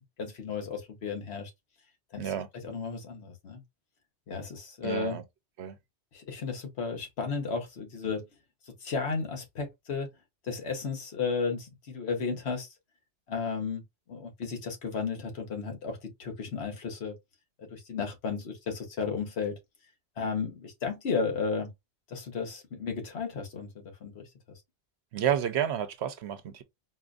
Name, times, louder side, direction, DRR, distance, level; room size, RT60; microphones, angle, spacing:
voice 1, 0.2-1.5 2.1-2.3 2.6-3.6 4.3-5.2 6.1-8.2 8.8-10.1 10.4-12.7 13.3-13.8 14.1-17.2 17.6-19.6 20.2-21.7 22.1-24.3, left 5 dB, 70° left, 1.2 m, -33 dB
voice 2, 4.8-5.2 5.6-5.8 25.1-26.6, right 9 dB, 75° right, 0.9 m, -30 dB
4.2 x 2.5 x 2.3 m
omnidirectional pair, 1.1 m